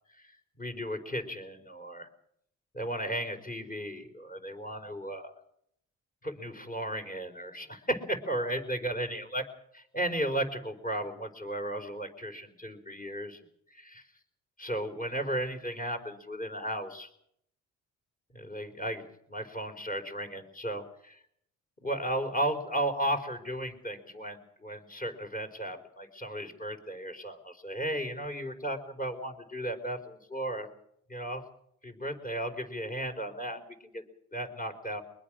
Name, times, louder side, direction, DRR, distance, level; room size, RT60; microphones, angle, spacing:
voice 1, 0.6-2.1 2.7-5.3 6.2-9.5 9.7-13.4 13.7-14.0 14.6-17.1 18.3-21.2 21.8-30.7 31.1-31.4 31.8-34.0 34.3-35.0, right 1 dB, 30° left, 6 dB, 4.5 m, -35 dB
23.0 x 21.0 x 6.4 m, 0.72 s
cardioid pair, 90°, 30 cm